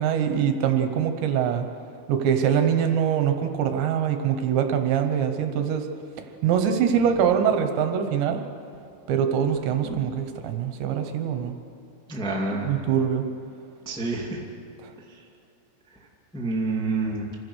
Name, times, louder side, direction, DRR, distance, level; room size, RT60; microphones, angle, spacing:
voice 1, 0.0-1.7 2.1-5.9 6.4-8.4 9.1-11.5 12.6-13.3, right 8 dB, 75° right, 6 dB, 3.2 m, -23 dB
voice 2, 12.1-12.8 13.8-14.4 16.3-17.3, right 3 dB, 5° left, -3 dB, 0.8 m, -28 dB
26.5 x 16.0 x 6.4 m, 2.6 s
omnidirectional pair, 5.6 m